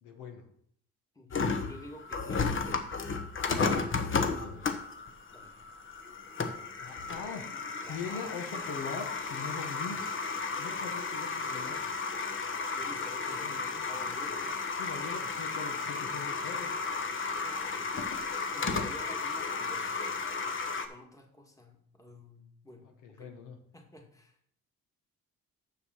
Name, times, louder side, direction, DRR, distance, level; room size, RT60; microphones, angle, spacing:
voice 1, 0.0-0.5 3.9-4.6 6.8-7.5 7.9-10.3 10.6-11.8 13.3-13.6 14.8-16.7 22.8-23.6, left 5 dB, 85° left, 4 dB, 1.6 m, -42 dB
voice 2, 1.2-2.9 5.3-5.5 7.8-8.4 12.7-14.7 17.3-17.9 18.5-20.0 20.7-23.3 23.7-24.4, left 1 dB, 10° left, 2 dB, 1.9 m, -50 dB
sound 1, 1.3-20.9, left 4 dB, 40° left, 1.1 m, -33 dB
7.0 x 6.6 x 6.4 m, 0.65 s
cardioid pair, 90°, 30 cm